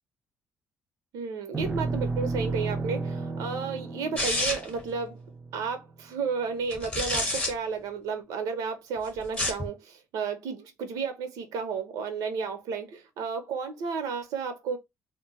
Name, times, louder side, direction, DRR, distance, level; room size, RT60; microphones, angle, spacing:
voice 1, 1.1-5.1 5.5-14.8, right 5 dB, 85° right, 0.8 m, -32 dB
sound 1, 1.5-6.0, right 3 dB, 20° right, 0.5 m, -33 dB
sound 2, 4.2-4.8 6.7-7.5 9.2-9.7, left 1 dB, 15° left, 0.8 m, -28 dB
2.2 x 2.2 x 3.9 m
cardioid pair, 160°, 6 cm